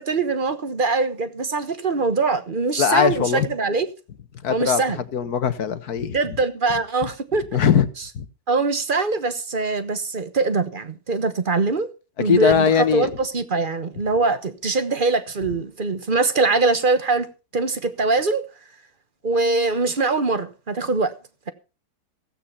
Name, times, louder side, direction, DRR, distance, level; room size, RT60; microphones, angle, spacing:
voice 1, 0.0-3.9 4.5-5.0 6.1-7.4 8.5-11.9 12.2-17.3 17.5-18.4 19.2-21.1, right 3 dB, 35° right, 1.1 m, -22 dB
voice 2, 2.8-3.5 4.4-4.8 5.1-6.2 7.5-7.9 8.2-8.3 12.2-13.1, left 7 dB, 65° left, 1.7 m, -20 dB
16.0 x 8.9 x 5.6 m
omnidirectional pair, 1.8 m